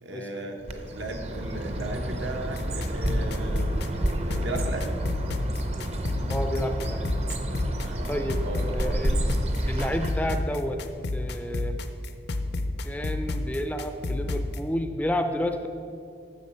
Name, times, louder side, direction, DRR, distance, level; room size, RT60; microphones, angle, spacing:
voice 1, 0.0-3.7 4.3-5.0 7.8-9.0, right 2 dB, 80° right, 3 dB, 1.1 m, -36 dB
Bird, 0.6-10.4, right 1 dB, 35° right, 0.6 m, -30 dB
sound 1, 2.5-14.6, left 2 dB, 60° left, 0.5 m, -31 dB
voice 2, 6.3-7.1 8.1-9.3 9.7-10.8 11.1-11.8 12.8-15.7, left 1 dB, 10° left, 7 dB, 0.4 m, -30 dB
9.7 x 7.1 x 5.4 m, 2.5 s
head